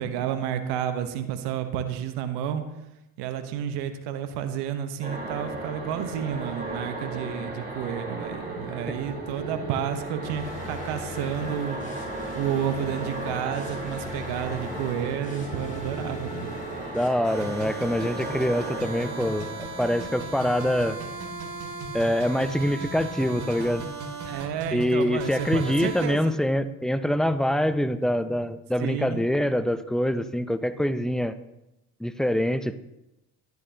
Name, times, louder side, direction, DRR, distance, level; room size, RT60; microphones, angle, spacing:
voice 1, 0.0-2.6 3.2-11.8 12.3-16.5 24.3-26.3 28.8-29.2, right 9 dB, 75° right, 9 dB, 1.0 m, -31 dB
sound 1, 5.0-20.9, right 2 dB, 20° right, 3.2 m, -36 dB
sound 2, 10.2-17.1, left 3 dB, 20° left, 3.2 m, -40 dB
voice 2, 16.9-21.0 21.9-23.9 24.7-31.4 32.0-32.8, equal, ahead, 12 dB, 0.5 m, -25 dB
sound 3, 17.2-26.1, right 3 dB, 45° right, 2.2 m, -36 dB
11.5 x 9.3 x 2.8 m, 0.92 s
hypercardioid pair, 70°, 41 cm